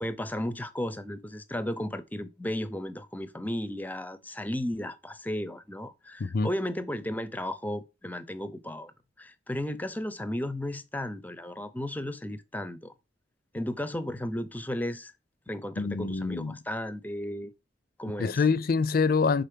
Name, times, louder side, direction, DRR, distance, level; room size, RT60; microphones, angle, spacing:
voice 1, 0.0-8.9 9.2-12.9 13.5-15.1 15.5-17.5 18.0-18.4, left 1 dB, 10° left, 0.6 m, -34 dB
voice 2, 15.8-16.6 18.2-19.4, left 4 dB, 55° left, 0.5 m, -25 dB
5.6 x 4.0 x 5.1 m
head